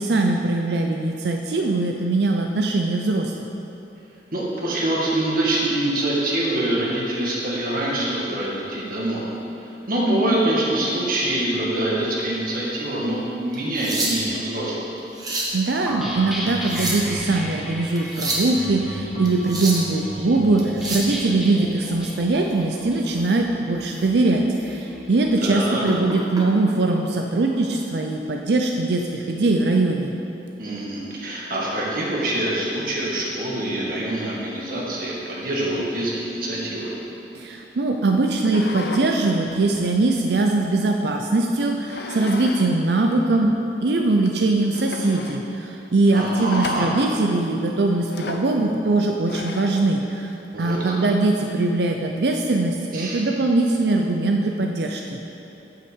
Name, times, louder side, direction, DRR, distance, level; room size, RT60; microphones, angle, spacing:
voice 1, 0.0-3.3 15.5-30.1 37.3-50.3 50.6-55.2, right 2 dB, 70° right, 2 dB, 0.5 m, -21 dB
voice 2, 4.3-9.3 9.9-14.8 25.4-25.8 30.6-36.9 46.1-46.9 50.5-51.0 52.9-53.2, right 1 dB, 55° right, -5 dB, 1.9 m, -25 dB
sound 1, 13.5-14.4 15.0-15.6 16.5-17.2 18.0-18.5 19.2-19.9 20.6-21.1 23.2-23.3 23.9-24.1 24.5-24.7 25.8-26.4 27.5-27.7, right 2 dB, 20° right, 1.4 m, -28 dB
sound 2, 15.9-25.3, equal, 5° right, 1.4 m, -34 dB
sound 3, 38.4-39.1 39.5-40.9 41.9-42.7 43.0-43.1 43.7-43.8 44.3-44.4 44.7-45.4 46.5-47.1 48.1-48.5 49.3-49.8, left 3 dB, 65° left, 0.7 m, -34 dB
8.7 x 5.6 x 7.2 m, 2.9 s
head